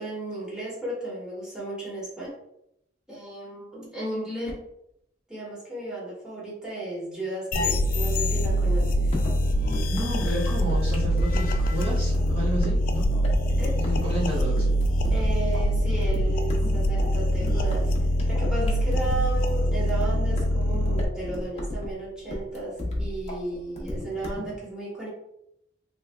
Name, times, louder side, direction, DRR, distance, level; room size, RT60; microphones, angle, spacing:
voice 1, 0.0-2.3 3.1-4.5 5.3-9.1 13.6-13.8 15.1-17.9 18.3-25.1, right 2 dB, 5° right, -7 dB, 1.3 m, -34 dB
sound 1, 7.5-21.0, equal, 50° left, 0.4 m, -24 dB
sound 2, 9.1-24.5, left 1 dB, 35° left, 0.7 m, -34 dB
voice 2, 9.9-13.1 13.7-14.8, right 1 dB, 30° right, -8 dB, 0.8 m, -31 dB
3.4 x 3.1 x 2.3 m, 0.80 s
head